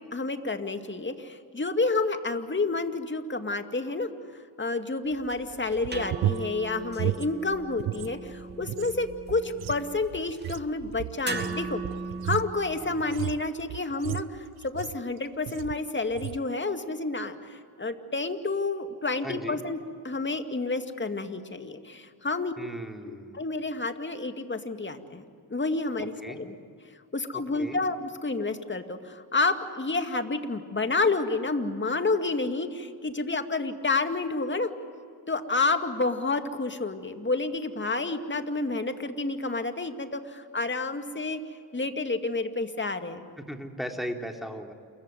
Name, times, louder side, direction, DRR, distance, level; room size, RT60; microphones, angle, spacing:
voice 1, 0.1-4.1 4.6-11.8 12.2-19.8 20.0-22.5 23.0-25.2 25.5-26.5 27.1-34.7 35.3-41.4 41.7-43.3, left 3 dB, 25° left, 7 dB, 2.3 m, -29 dB
sound 1, 5.1-13.1, right 3 dB, 20° right, 2.7 m, -39 dB
sound 2, 5.7-8.1 8.4-15.1 15.5-15.8 16.1-16.5, right 13 dB, 50° right, 0.6 m, -34 dB
voice 2, 19.2-19.6 22.6-23.4 26.2-26.4 27.3-27.8 43.4-44.7, equal, ahead, 3 dB, 3.5 m, -37 dB
28.0 x 15.5 x 9.3 m, 2.3 s
supercardioid pair, 50°, 48 cm